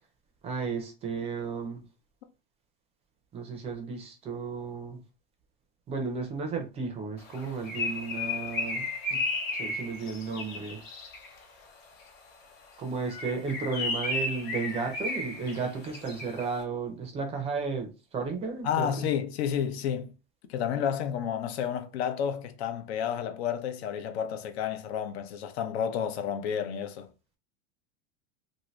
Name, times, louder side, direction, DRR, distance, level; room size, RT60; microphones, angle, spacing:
voice 1, 0.4-1.8 3.3-5.0 5.9-9.2 9.6-10.8 12.8-19.1, right 4 dB, 20° right, 0.5 m, -34 dB
Bird, 7.3-11.4 13.0-16.5, left 2 dB, 35° left, 1.0 m, -34 dB
voice 2, 18.6-20.1 20.5-27.1, left 8 dB, 75° left, 0.7 m, -31 dB
2.7 x 2.6 x 3.1 m
supercardioid pair, 155°, 32 cm